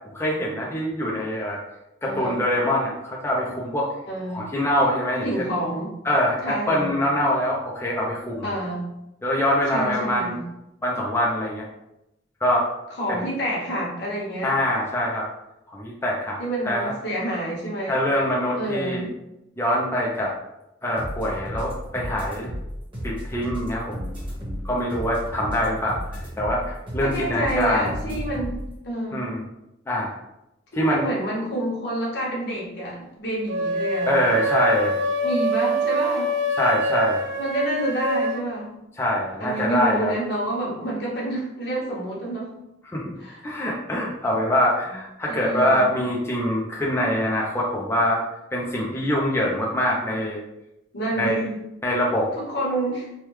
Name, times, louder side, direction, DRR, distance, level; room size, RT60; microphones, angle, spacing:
voice 1, 0.1-1.6 2.0-3.9 4.3-5.3 6.0-8.5 9.2-10.4 10.8-11.7 12.4-12.7 13.1-13.2 14.4-15.3 15.7-16.4 16.7-16.9 17.9-19.1 19.6-20.3 20.8-22.5 23.0-24.1 24.5-28.0 29.1-29.4 29.9-30.2 30.7-31.1 34.1-35.0 36.6-37.2 39.0-40.1 42.9-43.2 43.4-48.2 48.5-50.4 51.2-51.4 51.8-52.3, equal, 15° left, -4 dB, 0.4 m, -24 dB
voice 2, 2.0-2.4 4.1-4.5 5.2-5.9 6.4-6.9 8.4-8.9 9.7-10.4 13.0-14.5 16.4-18.0 18.6-19.1 27.0-28.6 28.8-29.4 30.7-34.1 35.2-36.3 37.4-38.7 39.4-42.5 43.2-43.4 45.3-45.9 50.9-51.5 52.3-53.1, right 1 dB, 65° left, -4 dB, 1.1 m, -28 dB
sound 1, 21.0-28.7, equal, 30° right, 1.2 m, -33 dB
sound 2, 33.5-38.4, right 1 dB, 65° right, 0.6 m, -24 dB
3.3 x 2.2 x 3.0 m, 0.88 s
head